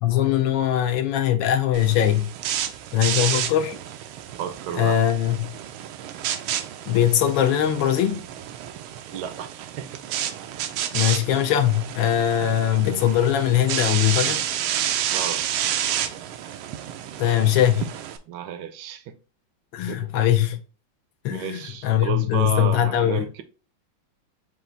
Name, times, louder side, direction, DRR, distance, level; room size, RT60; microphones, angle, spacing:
voice 1, 0.0-2.3 2.9-3.8 4.7-5.6 6.9-8.2 10.9-14.4 17.2-17.9 19.7-20.6 21.2-23.3, left 11 dB, 75° left, 1.3 m, -21 dB
sound 1, 1.7-18.2, right 10 dB, 90° right, 1.5 m, -30 dB
voice 2, 4.4-5.0 9.1-9.9 10.6-10.7 15.1-15.4 18.3-19.2 19.9-20.1 21.3-23.4, right 8 dB, 70° right, 1.1 m, -32 dB
5.6 x 2.4 x 3.8 m
omnidirectional pair, 2.3 m